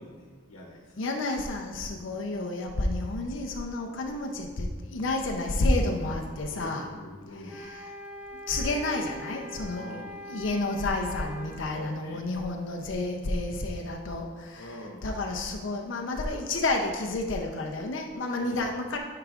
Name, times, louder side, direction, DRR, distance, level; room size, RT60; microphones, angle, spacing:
voice 1, 0.0-0.8 6.5-7.6 9.7-10.2 11.7-12.2 14.6-15.1 18.3-18.7, left 1 dB, 90° left, -2 dB, 1.0 m, -44 dB
voice 2, 1.0-6.9 7.3-7.9 8.3-19.0, left 2 dB, 65° left, 1 dB, 0.6 m, -30 dB
sound 1, 7.5-11.6, equal, 5° right, 0.4 m, -43 dB
9.8 x 4.8 x 2.4 m, 1.4 s
head